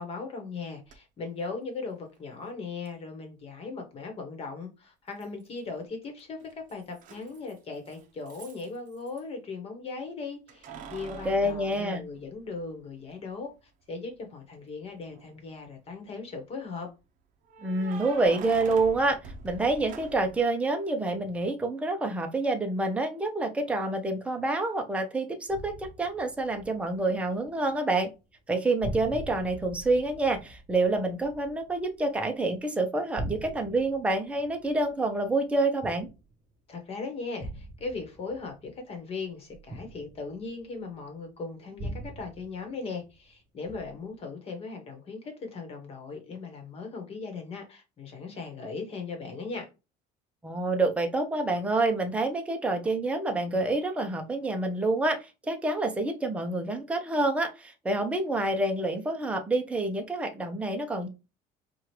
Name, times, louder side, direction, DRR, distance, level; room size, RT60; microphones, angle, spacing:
voice 1, 0.0-13.5 13.9-16.9 36.7-49.7, left 4 dB, 35° left, 1.2 m, -38 dB
Keys jangling, 0.9-1.0 2.9-3.0 5.2-5.7 6.0-9.2 10.5-12.6 13.1-13.2 15.0-15.5 17.5-20.4, right 5 dB, 45° right, 0.7 m, -45 dB
voice 2, 11.2-12.0 17.6-19.2 19.4-28.1 28.5-36.1 50.4-61.1, right 2 dB, 5° right, 0.6 m, -27 dB
sound 1, 25.5-27.8 28.0-28.5 28.8-32.5 32.9-36.5 37.4-41.0 41.8-43.3 43.7-44.2, right 1 dB, 20° right, 1.0 m, -42 dB
4.8 x 2.4 x 3.0 m
cardioid pair, 155°, 18 cm